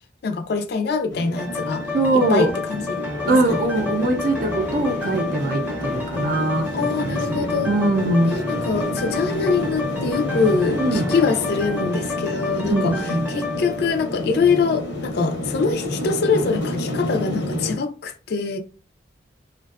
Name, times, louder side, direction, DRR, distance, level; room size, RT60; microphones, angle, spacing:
voice 1, 0.2-1.9 2.3-3.0 3.5-3.6 6.7-7.7 8.3-18.6, left 4 dB, 60° left, 0.4 m, -24 dB
sound 1, 1.1-17.8, left 1 dB, 80° left, 0.8 m, -29 dB
sound 2, 1.3-15.1 15.5-15.6, left 4 dB, 10° right, 0.6 m, -31 dB
voice 2, 1.9-2.5 3.3-8.4 10.8-11.1 12.6-13.3, right 2 dB, 50° right, 0.4 m, -22 dB
2.5 x 2.2 x 2.3 m
head